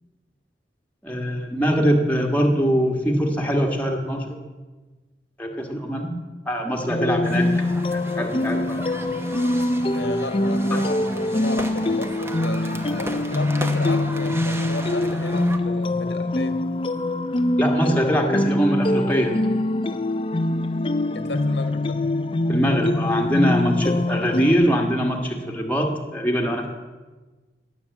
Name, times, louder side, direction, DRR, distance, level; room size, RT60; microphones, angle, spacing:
voice 1, 1.0-4.2 5.4-6.1 6.5-7.5 7.9-8.8 10.7-10.8 17.6-19.3 22.5-26.7, equal, 10° left, 1 dB, 1.6 m, -22 dB
sound 1, 6.9-24.5, left 1 dB, 30° left, 0.6 m, -24 dB
sound 2, 7.2-15.6, right 1 dB, 15° right, 1.0 m, -36 dB
voice 2, 9.9-16.6 21.1-22.0, left 2 dB, 85° left, 8 dB, 1.7 m, -34 dB
17.0 x 7.2 x 8.2 m, 1.3 s
head